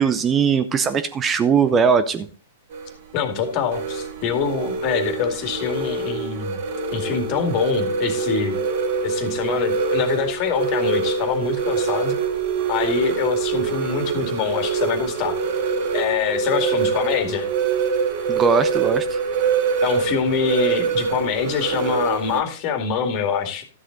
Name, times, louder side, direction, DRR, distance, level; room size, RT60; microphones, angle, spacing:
voice 1, 0.0-2.3 18.3-19.2, right 6 dB, 20° right, 11 dB, 0.7 m, -19 dB
sound 1, 2.7-22.4, right 5 dB, 50° right, 2.1 m, -25 dB
voice 2, 3.1-6.6 6.9-8.6 9.0-12.2 12.7-15.3 15.9-17.5 19.8-23.6, left 7 dB, 40° left, 6 dB, 2.2 m, -24 dB
12.5 x 7.5 x 3.9 m, 0.37 s
figure-of-eight pair, 110°, 0 cm